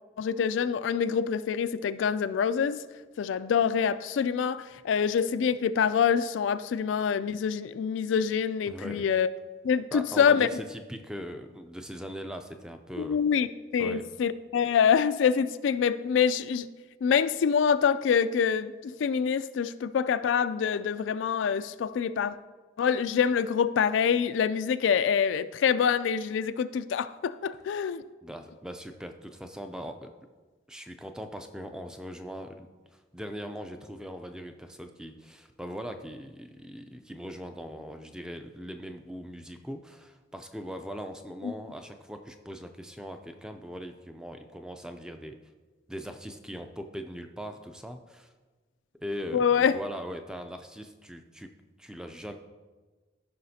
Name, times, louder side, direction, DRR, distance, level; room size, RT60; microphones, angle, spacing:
voice 1, 0.2-2.8 3.2-9.3 9.6-10.5 13.0-13.5 13.7-16.7 17.0-22.4 22.8-28.0 41.4-41.5 49.3-49.8, left 7 dB, 85° left, 0.3 m, -26 dB
voice 2, 8.7-9.0 9.9-13.2 13.8-14.0 28.2-30.1 30.7-45.4 45.9-48.3 49.0-51.5 51.8-52.3, equal, 5° right, 0.4 m, -40 dB
14.0 x 5.7 x 2.7 m
head